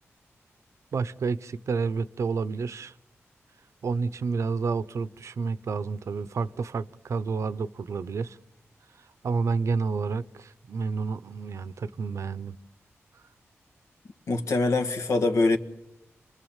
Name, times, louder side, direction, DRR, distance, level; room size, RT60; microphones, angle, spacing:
voice 1, 0.9-2.9 3.8-8.4 9.2-12.5, right 4 dB, 75° right, 0.8 m, -30 dB
voice 2, 14.3-15.6, left 3 dB, 80° left, 1.8 m, -23 dB
27.5 x 21.0 x 7.3 m
cardioid pair, 65°, 5 cm